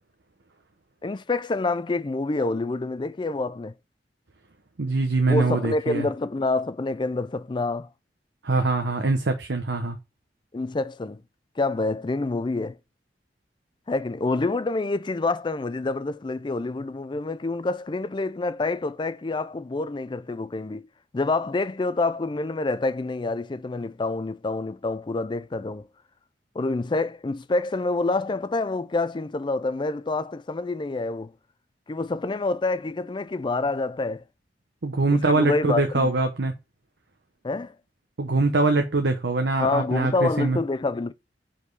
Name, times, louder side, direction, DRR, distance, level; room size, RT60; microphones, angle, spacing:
voice 1, 1.0-3.7 5.3-7.9 10.5-11.2 11.6-12.8 13.9-20.9 21.1-25.9 26.5-31.3 31.9-34.2 35.1-36.1 37.4-37.7 39.6-41.1, left 3 dB, 25° left, 0.4 m, -27 dB
voice 2, 4.8-6.1 8.4-10.0 34.8-36.5 38.2-40.6, right 3 dB, 80° right, 0.8 m, -23 dB
5.0 x 4.3 x 5.4 m
head